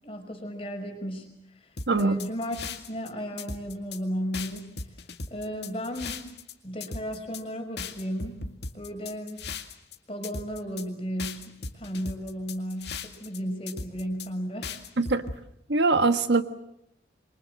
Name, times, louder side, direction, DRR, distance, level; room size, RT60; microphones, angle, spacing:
voice 1, 0.0-4.7 5.3-6.3 6.6-8.4 8.7-9.5 10.1-14.7, equal, 30° left, 4 dB, 5.5 m, -34 dB
sound 1, 1.8-3.1 3.4-4.0 4.3-6.5 6.8-7.4 7.8-10.0 10.2-10.8 11.2-13.4 13.7-14.3 14.6-15.4, left 4 dB, 70° left, 2.1 m, -37 dB
voice 2, 1.9-2.2 15.0-15.2 15.7-16.4, right 3 dB, 80° right, 9 dB, 1.6 m, -22 dB
27.5 x 24.0 x 7.6 m, 0.80 s
head